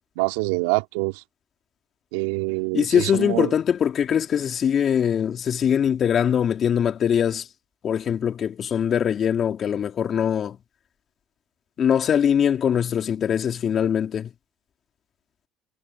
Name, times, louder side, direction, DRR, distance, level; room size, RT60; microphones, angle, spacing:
voice 1, 0.2-1.2 2.1-3.5, right 24 dB, 80° right, 2.9 m, -25 dB
voice 2, 2.7-7.4 7.8-10.6 11.8-14.3, left 8 dB, 50° left, 2.6 m, -22 dB
hypercardioid pair, 65°, 0 cm